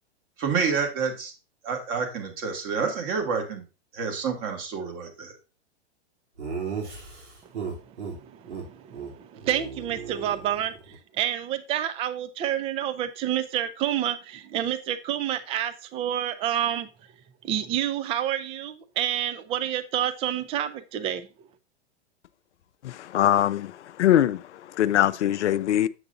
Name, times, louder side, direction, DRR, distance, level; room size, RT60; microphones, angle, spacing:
voice 1, 0.4-1.3 1.6-3.6 3.9-5.3, right 5 dB, 40° right, 2.3 m, -28 dB
Laughter, 6.4-8.1 8.5-8.6 8.9-9.1 9.4-10.9, right 6 dB, 75° right, 3.0 m, -35 dB
voice 2, 7.8-16.9 17.4-21.3, right 11 dB, 20° right, 0.4 m, -29 dB
voice 3, 22.8-23.7 24.0-24.4 24.8-25.9, left 12 dB, 85° left, 0.5 m, -22 dB
7.9 x 6.9 x 2.5 m
hypercardioid pair, 125°, 34 cm